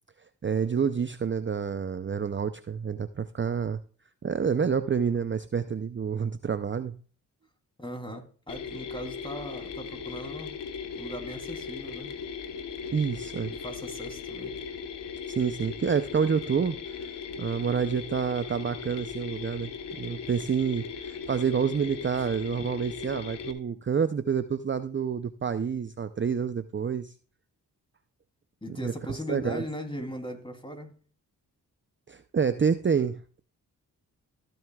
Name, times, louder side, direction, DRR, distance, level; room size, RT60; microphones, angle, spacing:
voice 1, 0.4-3.8 4.2-7.0 12.9-13.5 15.3-16.8 17.4-19.7 20.0-27.1 28.8-29.6 32.1-33.4, right 6 dB, 30° right, 12 dB, 0.6 m, -28 dB
voice 2, 7.8-10.6 11.0-12.1 13.5-14.6 28.6-30.9, equal, 10° left, 4 dB, 3.2 m, -39 dB
Mechanisms, 8.5-23.5, left 6 dB, 80° left, 1.3 m, -38 dB
14.0 x 7.8 x 2.4 m, 0.41 s
supercardioid pair, 40°, 41 cm